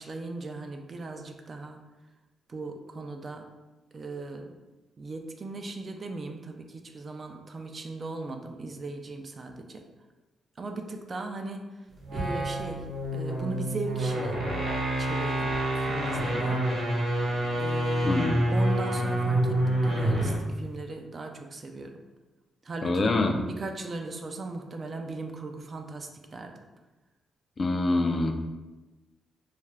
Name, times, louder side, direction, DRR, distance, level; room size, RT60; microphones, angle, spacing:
voice 1, 0.0-1.8 2.5-3.5 3.9-4.6 5.0-9.8 10.6-11.7 12.1-12.8 13.1-14.4 15.0-16.7 17.6-18.1 18.5-22.0 22.6-23.1 23.5-26.5, right 2 dB, 45° right, 4 dB, 0.3 m, -38 dB
sound 1, 12.0-20.5, right 1 dB, 70° right, 0.7 m, -27 dB
voice 2, 18.0-18.4 22.8-23.4 27.6-28.3, left 2 dB, 40° left, 5 dB, 0.3 m, -25 dB
2.4 x 2.2 x 3.2 m, 1.1 s
cardioid pair, 80°, 0 cm